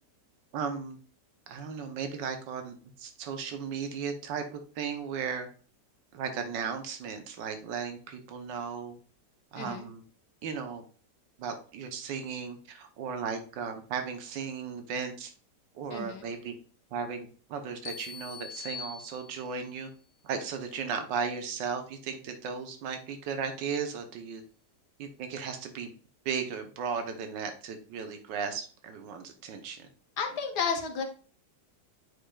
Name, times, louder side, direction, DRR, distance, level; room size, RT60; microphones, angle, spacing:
voice 1, 0.5-1.0 1.5-5.5 6.1-9.0 9.5-10.0 10.4-10.8 11.4-15.3 15.7-16.5 16.9-19.9 20.2-24.4 25.0-25.9 26.2-29.9, right 6 dB, 90° right, 6 dB, 1.5 m, -36 dB
voice 2, 15.9-16.3 30.2-31.0, left 6 dB, 65° left, 4 dB, 1.7 m, -32 dB
sound 1, 17.9-19.7, left 6 dB, 85° left, 0.5 m, -43 dB
8.6 x 5.1 x 2.3 m, 0.40 s
omnidirectional pair, 1.9 m